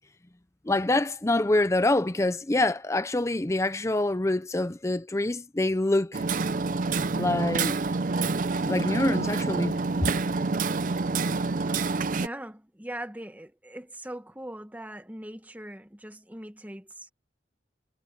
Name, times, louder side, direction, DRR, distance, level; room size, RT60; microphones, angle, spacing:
voice 1, 0.7-6.2 7.1-7.7 8.7-10.1, left 2 dB, 15° left, 0.6 m, -26 dB
Hammer, 6.1-12.3, right 4 dB, 50° right, 0.5 m, -27 dB
voice 2, 11.6-17.1, right 1 dB, 10° right, 1.4 m, -41 dB
head